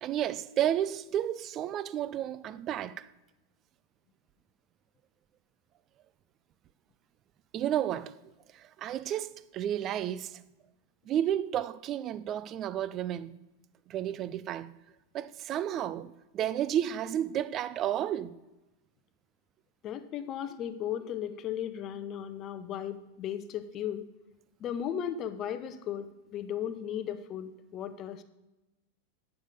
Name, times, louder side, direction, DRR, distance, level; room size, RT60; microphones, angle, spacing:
voice 1, 0.0-3.1 7.5-8.2 8.5-10.4 11.1-13.3 13.9-14.7 15.1-18.4, right 11 dB, 30° right, 0.4 m, -32 dB
voice 2, 19.8-24.1 24.6-28.2, left 9 dB, 30° left, 0.7 m, -36 dB
11.0 x 4.8 x 6.6 m
figure-of-eight pair, 90°, 0 cm